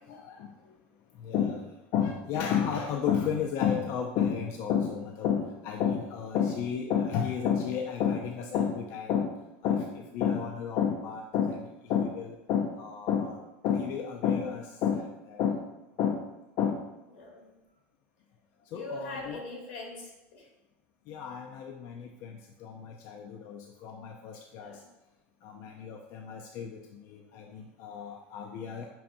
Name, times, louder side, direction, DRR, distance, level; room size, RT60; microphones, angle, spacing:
voice 1, 0.1-0.5 1.2-9.3 9.6-15.6 16.0-16.2 16.6-16.8 18.7-19.4 21.1-24.8 25.4-28.9, left 7 dB, 55° left, 2 dB, 0.3 m, -31 dB
voice 2, 17.2-17.5 18.7-20.5 24.5-24.8, left 2 dB, 85° left, -1 dB, 1.1 m, -42 dB
5.4 x 2.5 x 2.5 m, 0.99 s
supercardioid pair, 110°, 6 cm